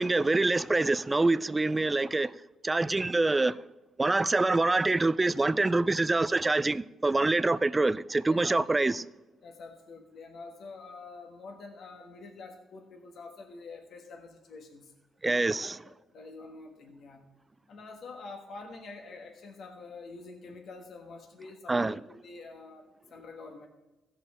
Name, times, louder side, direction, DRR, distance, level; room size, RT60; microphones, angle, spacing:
voice 1, 0.0-2.4 2.6-3.6 4.0-9.1 15.2-15.8 21.7-22.0, right 2 dB, 20° right, 0.4 m, -25 dB
voice 2, 8.2-8.9 9.4-14.9 15.6-17.3 17.7-23.7, left 3 dB, 60° left, 1.4 m, -47 dB
16.5 x 5.5 x 4.2 m
cardioid pair, 110°, 0 cm